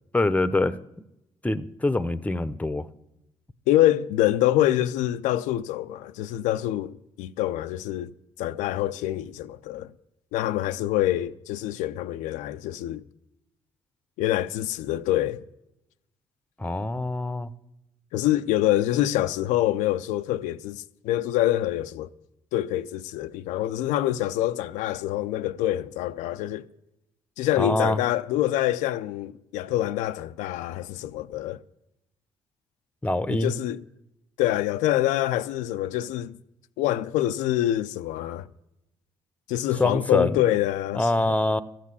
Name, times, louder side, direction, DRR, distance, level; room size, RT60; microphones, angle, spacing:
voice 1, 0.1-0.8 1.4-2.9 16.6-17.5 27.5-28.0 33.0-33.5 39.8-40.4 40.9-41.6, left 2 dB, 10° left, 0.7 m, -24 dB
voice 2, 3.7-8.1 8.4-9.9 10.3-13.0 14.2-15.4 18.1-22.1 22.5-26.6 27.4-31.6 33.3-33.8 34.4-36.4 36.8-38.5 39.5-41.1, left 14 dB, 85° left, 0.4 m, -25 dB
13.5 x 7.4 x 8.3 m
supercardioid pair, 65°, 13 cm